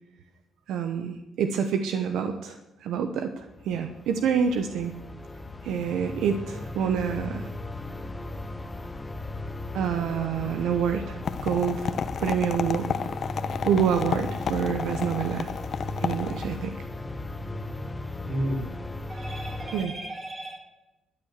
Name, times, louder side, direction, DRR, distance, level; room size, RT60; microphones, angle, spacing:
voice 1, 0.7-4.9 5.6-7.5 9.7-11.9 12.2-12.9 13.7-15.5 16.0-16.8 19.7-19.9, right 7 dB, 85° right, 7 dB, 1.0 m, -27 dB
sound 1, 3.4-19.9, left 2 dB, 15° left, 1.1 m, -37 dB
sound 2, 11.2-16.7, left 7 dB, 55° left, 0.8 m, -32 dB
voice 2, 18.2-18.6 19.1-20.6, right 1 dB, 40° right, 2 dB, 4.7 m, -33 dB
13.5 x 9.7 x 7.5 m, 0.99 s
cardioid pair, 90°, 0 cm